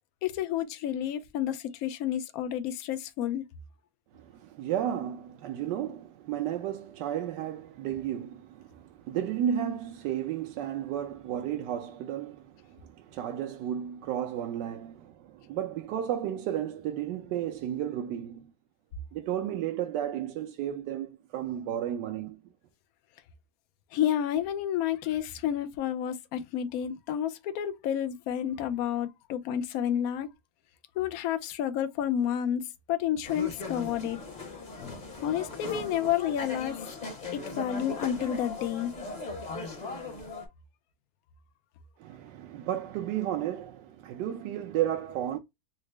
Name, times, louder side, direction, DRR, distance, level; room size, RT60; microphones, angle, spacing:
voice 1, 0.2-3.4 23.9-30.3 31.0-34.2 34.8-35.0 35.2-36.8 37.3-38.9, left 10 dB, 75° left, 0.8 m, -30 dB
voice 2, 4.1-18.5 19.1-22.4 42.0-45.4, right 10 dB, 75° right, 1.2 m, -33 dB
sound 1, 33.2-40.5, left 3 dB, 30° left, 0.8 m, -39 dB
4.0 x 2.0 x 3.1 m
omnidirectional pair, 2.0 m